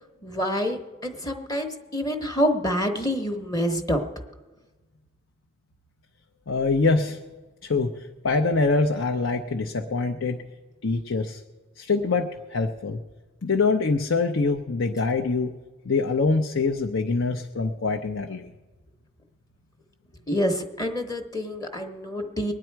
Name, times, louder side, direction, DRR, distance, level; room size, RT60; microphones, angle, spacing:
voice 1, 0.2-4.0 20.3-22.5, equal, 20° left, 4 dB, 0.9 m, -27 dB
voice 2, 6.5-7.2 7.6-8.0 8.2-10.4 10.8-11.4 11.8-13.0 13.4-15.5 15.8-18.5, left 3 dB, 80° left, 4 dB, 0.7 m, -24 dB
22.5 x 9.9 x 4.6 m, 1.2 s
head